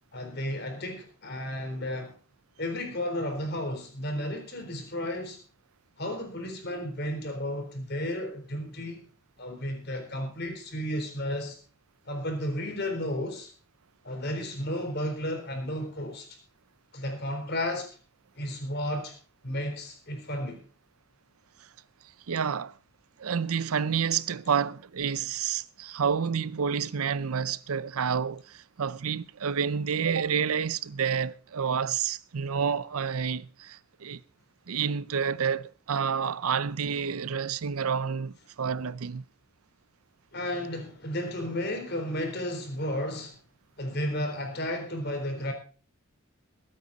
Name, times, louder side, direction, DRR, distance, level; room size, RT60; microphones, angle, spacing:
voice 1, 0.1-2.1 2.6-5.4 6.0-9.0 9.4-11.6 12.1-13.5 14.0-16.3 16.9-17.9 18.4-19.2 19.4-20.6 40.3-43.4 43.8-45.5, left 1 dB, 50° left, 3.9 m, -33 dB
voice 2, 22.3-22.7 23.2-34.2 34.7-39.2, right 7 dB, 90° right, 0.6 m, -29 dB
22.0 x 9.0 x 4.1 m
head